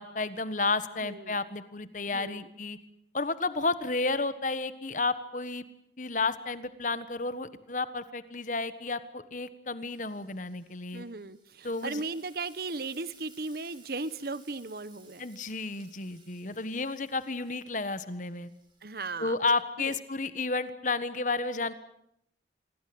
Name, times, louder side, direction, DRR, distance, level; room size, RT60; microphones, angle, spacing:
voice 1, 0.0-2.8 3.1-5.6 6.0-11.0 11.6-12.0 15.2-18.5 19.2-21.7, left 3 dB, 40° left, 13 dB, 1.4 m, -32 dB
voice 2, 1.0-1.3 2.1-2.5 10.9-15.3 18.8-19.4 19.8-20.0, right 3 dB, 55° right, 16 dB, 1.1 m, -37 dB
Frying (food), 9.9-19.6, right 5 dB, 25° right, 7.0 m, -60 dB
26.5 x 21.5 x 7.9 m, 0.75 s
head